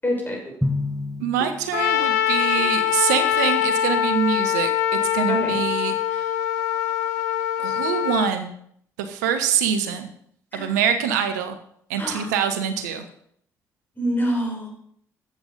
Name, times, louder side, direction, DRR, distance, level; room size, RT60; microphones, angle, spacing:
voice 1, 0.0-0.4 2.6-2.7 5.3-5.6 10.5-10.7 12.0-12.3 14.0-14.7, equal, 20° left, 0 dB, 6.4 m, -26 dB
Drum, 0.6-2.3, left 2 dB, ahead, 1.4 m, -29 dB
voice 2, 1.2-6.3 7.6-8.5 9.0-10.1 10.5-11.6 11.9-13.0, right 8 dB, 85° right, 7 dB, 0.9 m, -25 dB
Trumpet, 1.7-8.3, left 11 dB, 85° left, 0.6 m, -23 dB
12.5 x 8.0 x 5.2 m, 0.66 s
hypercardioid pair, 45°, 9 cm